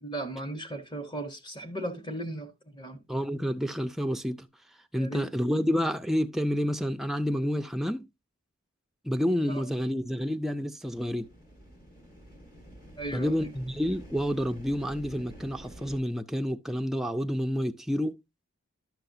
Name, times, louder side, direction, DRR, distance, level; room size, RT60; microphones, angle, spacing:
voice 1, 0.0-3.0 5.0-5.2 9.5-9.6 13.0-13.3, right 1 dB, 20° left, 0.9 m, -36 dB
voice 2, 3.1-4.5 4.9-8.0 9.0-11.3 13.1-18.2, equal, ahead, 0.3 m, -29 dB
sound 1, 10.8-16.0, equal, 45° left, 2.0 m, -48 dB
11.0 x 5.8 x 2.6 m
head